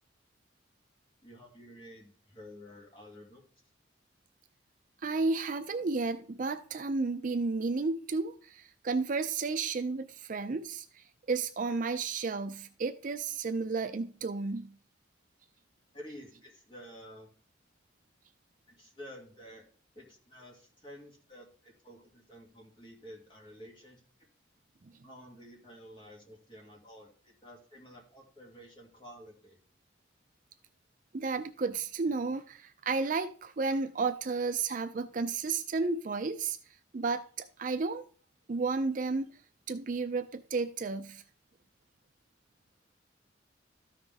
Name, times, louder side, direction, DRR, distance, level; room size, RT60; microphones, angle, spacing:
voice 1, 1.2-3.4 15.9-17.3 18.7-19.6 19.9-24.0 25.0-29.6, equal, 25° left, 2.2 m, -51 dB
voice 2, 5.0-14.8 31.1-36.6 36.9-38.0 38.5-39.3 39.7-41.2, right 4 dB, 45° right, 0.4 m, -32 dB
13.5 x 5.8 x 3.5 m
head